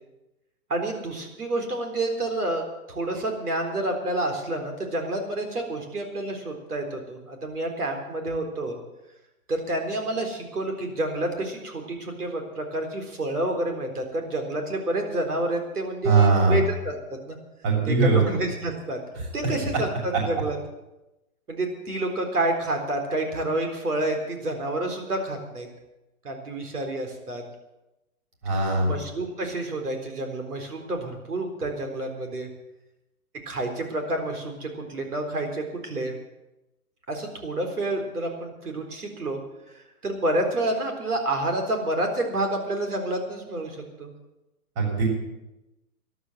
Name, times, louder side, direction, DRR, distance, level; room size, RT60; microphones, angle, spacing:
voice 1, 0.7-8.8 9.5-17.4 17.8-19.0 19.3-20.6 21.5-25.7 26.2-27.4 28.8-32.5 33.5-36.1 37.1-39.4 39.7-44.1, right 1 dB, 85° right, 4 dB, 4.1 m, -29 dB
voice 2, 16.0-16.6 17.6-18.2 28.4-28.9 44.8-45.1, right 3 dB, 40° right, 0 dB, 6.9 m, -20 dB
13.5 x 11.5 x 7.9 m, 0.97 s
hypercardioid pair, 120°, 44 cm